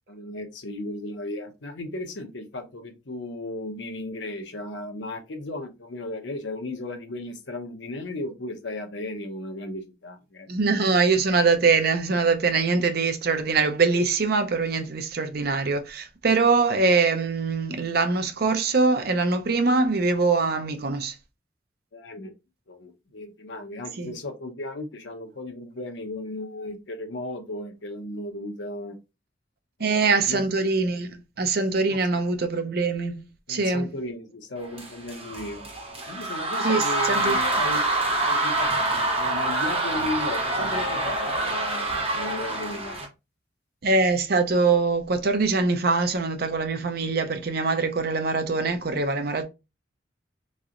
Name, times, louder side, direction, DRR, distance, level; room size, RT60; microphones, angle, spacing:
voice 1, 0.1-10.5 21.9-22.3 22.7-29.0 29.8-30.5 31.9-32.0 33.5-35.6 36.1-37.9 38.2-42.9, left 2 dB, 75° left, 0.8 m, -35 dB
voice 2, 10.5-21.1 24.0-24.1 29.8-33.9 36.6-37.4 43.8-49.4, right 4 dB, 55° right, 0.6 m, -23 dB
sound 1, 34.7-43.1, right 2 dB, 30° right, 1.0 m, -26 dB
3.9 x 3.1 x 2.4 m
head